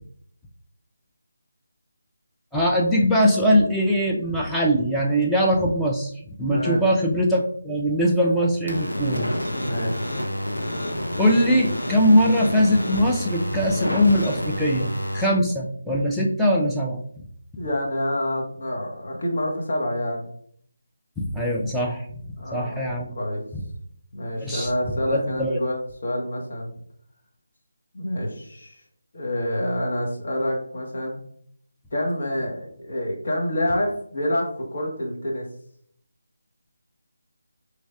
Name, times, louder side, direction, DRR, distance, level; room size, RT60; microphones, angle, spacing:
voice 1, 2.5-6.1 6.4-9.3 11.2-17.0 21.2-23.1 24.4-24.7 25.1-25.5, equal, ahead, -4 dB, 0.5 m, -21 dB
voice 2, 6.5-6.8 9.5-10.0 17.6-20.3 22.4-22.8 23.1-23.4 24.1-26.7 27.9-28.8 29.1-31.2 31.9-35.5, left 1 dB, 50° left, -1 dB, 1.2 m, -27 dB
sound 1, 8.7-15.2, left 1 dB, 85° left, 0.9 m, -28 dB
5.1 x 3.2 x 2.3 m, 0.64 s
figure-of-eight pair, 155°, 0 cm